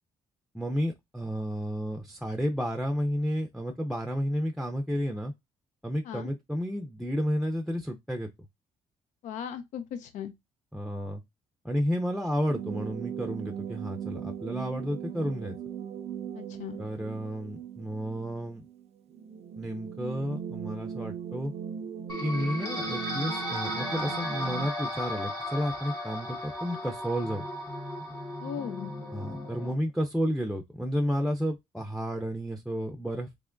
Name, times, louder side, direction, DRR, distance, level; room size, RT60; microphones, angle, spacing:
voice 1, 0.5-5.3 5.8-8.3 10.7-11.2 11.6-15.6 16.8-18.6 19.6-21.5 22.2-27.4 29.1-33.3, equal, ahead, 0.5 m, -31 dB
voice 2, 9.2-10.3 16.3-16.8 28.4-28.9, left 8 dB, 80° left, 0.5 m, -37 dB
sound 1, 12.5-24.7, right 8 dB, 60° right, 0.4 m, -39 dB
sound 2, 22.1-29.7, left 1 dB, 30° left, 1.5 m, -35 dB
3.4 x 3.0 x 2.5 m
cardioid pair, 75°, 13 cm